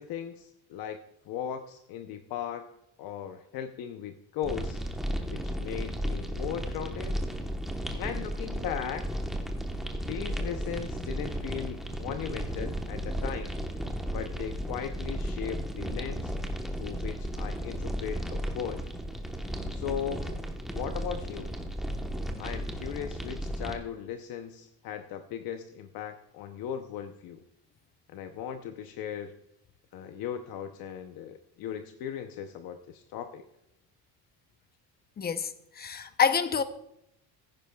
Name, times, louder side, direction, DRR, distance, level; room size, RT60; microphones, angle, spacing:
voice 1, 0.0-2.7 3.0-4.8 5.3-7.2 7.9-9.0 10.0-13.6 14.1-16.3 16.7-18.9 19.7-20.3 20.7-21.5 22.4-27.4 28.1-29.3 29.9-33.4, left 9 dB, 60° left, 0.7 m, -37 dB
sound 1, 4.4-23.7, equal, ahead, 1.0 m, -34 dB
voice 2, 35.2-36.6, left 7 dB, 25° left, 0.7 m, -27 dB
15.0 x 9.9 x 2.3 m
cardioid pair, 115°, 40 cm